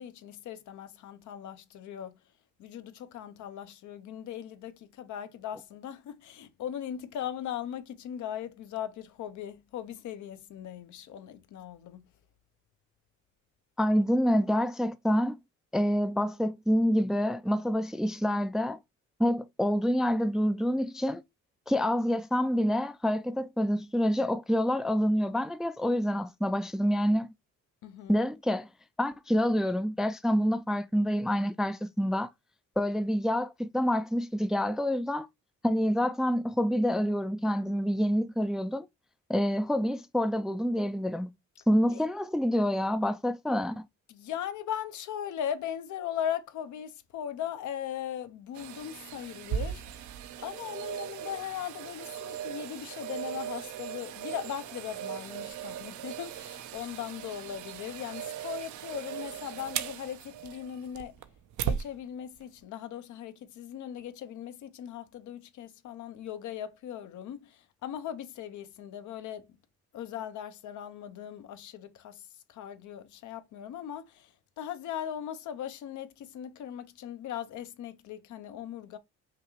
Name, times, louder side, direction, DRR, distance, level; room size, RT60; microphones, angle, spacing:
voice 1, 0.0-2.1 2.6-12.0 27.8-28.1 41.9-42.0 44.1-50.1 50.4-61.1 61.6-69.5 69.9-79.0, left 10 dB, 75° left, 0.7 m, -39 dB
voice 2, 13.8-15.4 15.7-18.8 19.2-21.2 21.7-27.3 28.1-28.7 29.0-32.3 32.8-35.3 35.6-38.9 39.3-41.3 41.7-43.8, equal, ahead, 0.3 m, -27 dB
sound 1, 48.6-61.9 62.4-62.5, right 9 dB, 75° right, 0.6 m, -38 dB
5.8 x 2.4 x 3.1 m
cardioid pair, 90°, 30 cm